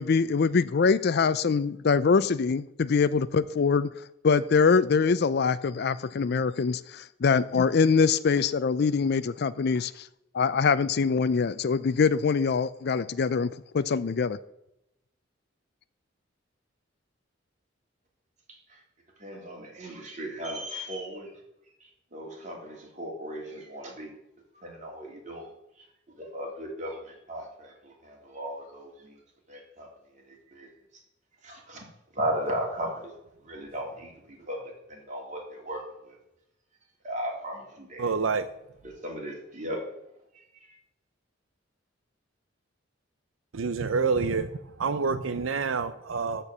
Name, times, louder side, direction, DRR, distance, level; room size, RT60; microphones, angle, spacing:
voice 1, 0.0-3.9 4.2-10.1 10.3-13.5 13.7-14.4, left 5 dB, 55° left, 16 dB, 0.4 m, -24 dB
voice 2, 18.5-18.8 19.2-21.4 21.8-24.1 24.6-25.5 26.1-29.2 29.5-29.9 30.1-30.7 31.4-31.9 32.1-33.1 33.4-36.2 37.0-38.1 38.8-39.8 40.3-40.8, right 1 dB, 40° right, 0 dB, 2.9 m, -37 dB
voice 3, 38.0-38.5 43.5-44.5 44.8-46.4, right 4 dB, 85° right, 11 dB, 0.6 m, -27 dB
13.5 x 4.6 x 7.2 m, 0.85 s
head